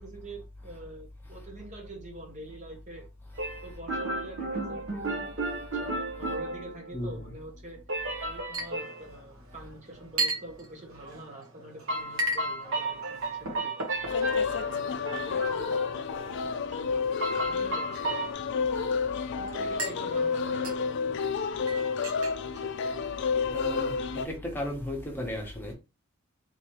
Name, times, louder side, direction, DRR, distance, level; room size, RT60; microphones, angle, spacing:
voice 1, 0.0-3.1 3.6-5.9 6.2-7.8 8.2-13.7 14.5-18.3 19.4-21.8 22.5-22.7, right 1 dB, 35° right, 0.8 m, -46 dB
sound 1, 3.4-7.2 7.9-9.0 11.9-15.9 17.2-18.3, right 2 dB, 60° right, 1.0 m, -34 dB
Chink clink, 8.5-23.6, right 1 dB, 75° right, 1.2 m, -39 dB
sound 2, 14.1-24.3, left 5 dB, 60° left, 0.3 m, -30 dB
voice 2, 23.5-23.9 24.2-25.7, left 1 dB, 10° left, 1.0 m, -34 dB
3.8 x 3.0 x 3.0 m
head